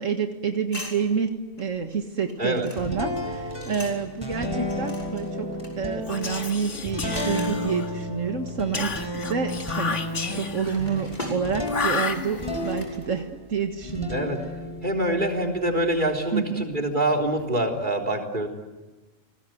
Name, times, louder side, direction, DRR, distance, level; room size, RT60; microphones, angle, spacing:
voice 1, 0.0-5.5 5.8-10.0 10.3-14.2 16.3-16.7, right 6 dB, 85° right, 5 dB, 2.0 m, -28 dB
sound 1, 0.7-4.2 4.6-8.2 8.5-8.7 9.4-13.7 14.2-17.6, left 1 dB, 35° left, 6.0 m, -42 dB
sound 2, 2.8-13.4 13.8-16.1, left 1 dB, 20° left, 4.6 m, -33 dB
Whispering, 6.0-8.0 8.7-10.8 11.7-12.7, left 4 dB, 70° left, 2.1 m, -31 dB
voice 2, 14.8-18.5, right 1 dB, 40° right, 1 dB, 4.0 m, -25 dB
30.0 x 20.0 x 9.4 m, 1.2 s
omnidirectional pair, 1.3 m